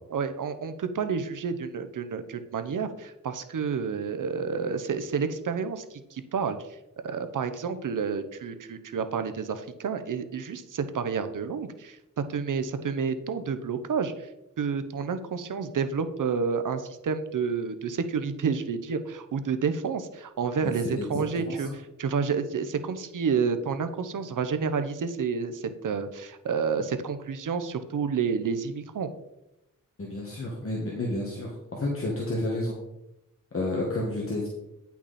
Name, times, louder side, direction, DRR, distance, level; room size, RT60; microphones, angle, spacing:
voice 1, 0.1-6.8 7.0-14.3 14.6-29.1, right 6 dB, 70° right, 10 dB, 0.8 m, -30 dB
voice 2, 20.6-21.6 30.0-32.7 33.5-34.5, left 2 dB, 40° left, -3 dB, 1.8 m, -31 dB
10.0 x 6.0 x 4.2 m, 0.90 s
wide cardioid pair, 110°, 33 cm